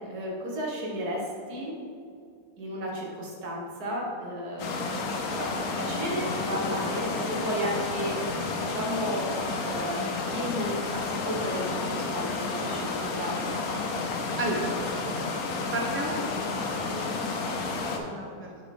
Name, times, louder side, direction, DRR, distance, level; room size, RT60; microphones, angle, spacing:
voice 1, 0.0-1.8 2.6-5.1 5.3-9.3 9.6-13.5, equal, 85° right, -3 dB, 2.0 m, -33 dB
sound 1, 4.6-18.0, left 3 dB, 75° left, 1.3 m, -31 dB
voice 2, 14.4-14.9 15.7-16.6 16.8-17.1 17.4-17.7 18.0-18.5, right 1 dB, 10° right, -2 dB, 0.9 m, -33 dB
9.0 x 4.9 x 4.3 m, 2.4 s
omnidirectional pair, 1.6 m